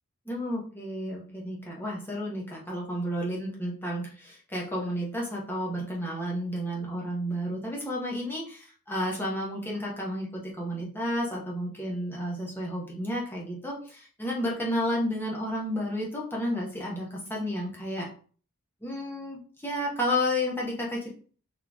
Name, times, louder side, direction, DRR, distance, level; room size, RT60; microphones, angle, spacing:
voice 1, 0.2-18.1 18.8-21.1, equal, 10° left, -3 dB, 1.2 m, -31 dB
4.5 x 3.2 x 3.6 m, 0.42 s
head